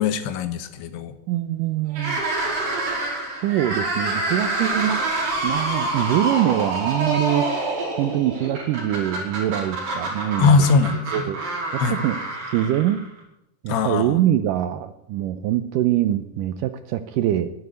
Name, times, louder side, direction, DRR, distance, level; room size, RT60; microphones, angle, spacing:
voice 1, 0.0-1.1 10.4-11.0 11.8-12.0 13.7-14.2, left 4 dB, 90° left, 11 dB, 3.3 m, -20 dB
voice 2, 1.3-2.2 3.4-5.0 5.4-7.5 8.0-10.7 11.1-11.4 11.7-13.0 13.6-17.5, right 12 dB, 80° right, 11 dB, 1.9 m, -23 dB
sound 1, 1.9-13.2, right 2 dB, 60° right, 6.5 m, -27 dB
12.5 x 12.0 x 9.2 m, 0.85 s
omnidirectional pair, 4.5 m